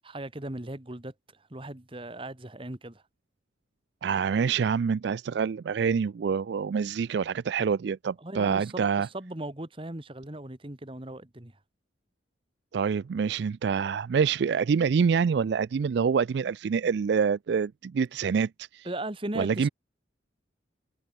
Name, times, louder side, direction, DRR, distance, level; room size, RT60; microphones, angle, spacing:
voice 1, 0.0-1.1 1.5-3.0 8.2-11.5 18.8-19.7, right 1 dB, 25° right, 1.4 m, -38 dB
voice 2, 4.0-9.1 12.7-18.9 19.4-19.7, right 6 dB, 60° right, 0.3 m, -26 dB
head